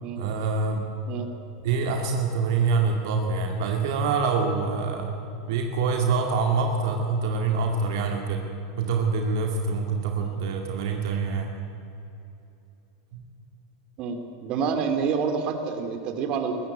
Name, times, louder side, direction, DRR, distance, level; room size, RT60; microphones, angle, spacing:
voice 1, 0.2-0.9 1.6-5.1 5.5-8.4 8.8-11.5, right 4 dB, 70° right, 3 dB, 2.3 m, -25 dB
voice 2, 14.0-16.6, right 6 dB, 45° right, 6 dB, 2.9 m, -28 dB
21.0 x 14.5 x 9.2 m, 2.8 s
hypercardioid pair, 110°, 2 cm